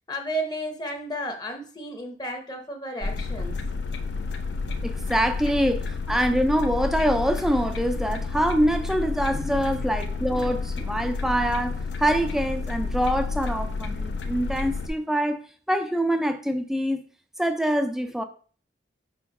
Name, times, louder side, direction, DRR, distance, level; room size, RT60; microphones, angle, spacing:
voice 1, 0.1-3.6, right 1 dB, 25° left, 1.0 m, -33 dB
sound 1, 3.0-14.9, left 4 dB, 85° left, 0.7 m, -30 dB
voice 2, 4.8-15.4 15.7-17.0 17.4-18.2, equal, ahead, 0.5 m, -25 dB
4.6 x 4.5 x 5.3 m
head